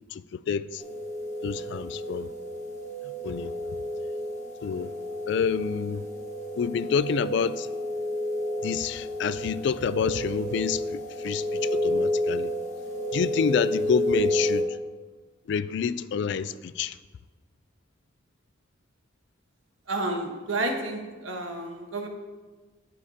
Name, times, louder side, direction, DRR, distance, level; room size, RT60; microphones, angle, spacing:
voice 1, 0.1-0.8 1.4-2.3 3.2-3.5 4.6-4.9 5.3-6.0 6.6-7.7 8.6-12.5 13.1-14.8 15.5-17.0, left 6 dB, 60° left, 0.3 m, -28 dB
sound 1, 0.8-14.6, left 1 dB, 40° left, 1.2 m, -31 dB
voice 2, 19.9-22.1, right 2 dB, 80° right, 1.3 m, -30 dB
12.0 x 7.2 x 2.8 m
head